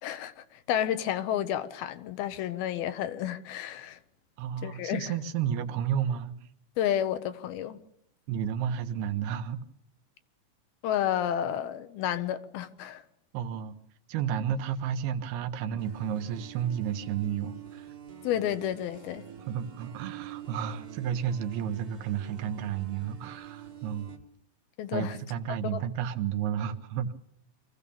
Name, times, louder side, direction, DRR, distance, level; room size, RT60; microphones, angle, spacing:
voice 1, 0.0-4.0 4.6-5.1 6.8-7.8 10.8-13.0 18.2-19.2 24.8-25.2 25.7-25.8, left 10 dB, 80° left, 2.8 m, -31 dB
voice 2, 4.4-6.3 8.3-9.6 13.3-13.7 14.1-17.9 19.5-24.1 24.9-27.1, right 9 dB, 90° right, 3.0 m, -32 dB
sound 1, 15.8-24.2, right 8 dB, 45° right, 1.1 m, -47 dB
25.0 x 15.5 x 7.0 m
omnidirectional pair, 4.4 m